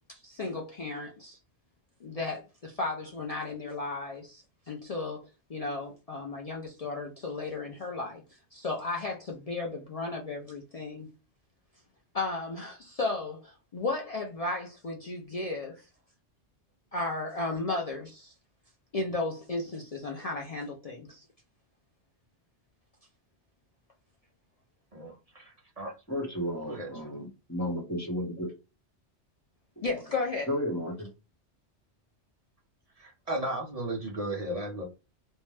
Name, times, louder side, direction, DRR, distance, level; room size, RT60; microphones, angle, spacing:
voice 1, 0.1-1.4 2.0-5.2 5.5-11.1 12.1-15.8 16.9-18.3 18.9-21.2 29.8-30.5, left 3 dB, 55° left, 0.4 m, -34 dB
voice 2, 24.9-25.9 26.6-27.1 33.0-34.8, right 1 dB, 40° right, 0.6 m, -35 dB
voice 3, 26.1-28.5 30.5-31.1, equal, 15° left, 0.9 m, -33 dB
2.6 x 2.1 x 3.2 m
omnidirectional pair, 1.2 m